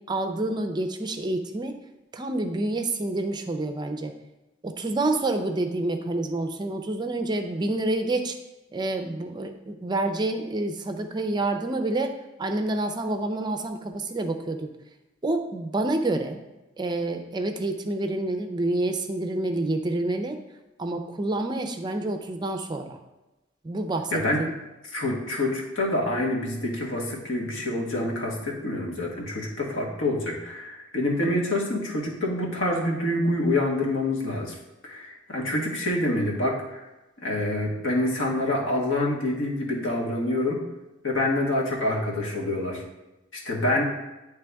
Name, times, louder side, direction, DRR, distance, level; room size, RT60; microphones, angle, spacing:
voice 1, 0.1-1.8 2.1-4.1 4.6-8.4 8.7-14.7 15.2-16.4 16.8-20.4 20.8-23.0 23.6-24.5, right 2 dB, 20° right, 6 dB, 0.4 m, -28 dB
voice 2, 24.1-24.4 24.9-34.5 34.8-36.8 37.2-40.6 41.0-42.8 43.3-43.8, left 1 dB, 85° left, -2 dB, 1.4 m, -26 dB
9.4 x 3.4 x 3.4 m, 1.0 s
head